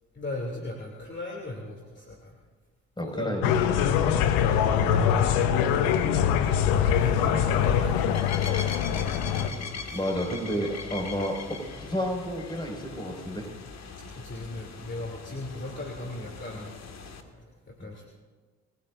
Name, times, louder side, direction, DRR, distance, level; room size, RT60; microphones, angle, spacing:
voice 1, 0.1-2.3 3.0-4.2 5.8-6.5 6.9-8.8 9.2-10.0 14.1-16.7 17.2-18.1, left 2 dB, 30° left, -1 dB, 3.0 m, -38 dB
voice 2, 3.0-3.6 4.8-5.1 9.9-13.5 17.8-17.9, equal, 15° left, 1 dB, 5.6 m, -31 dB
sound 1, 3.4-9.5, left 8 dB, 75° left, 1.1 m, -23 dB
sound 2, 6.4-17.2, left 4 dB, 45° left, 2.0 m, -41 dB
29.0 x 18.0 x 2.6 m, 1.4 s
hypercardioid pair, 45°, 36 cm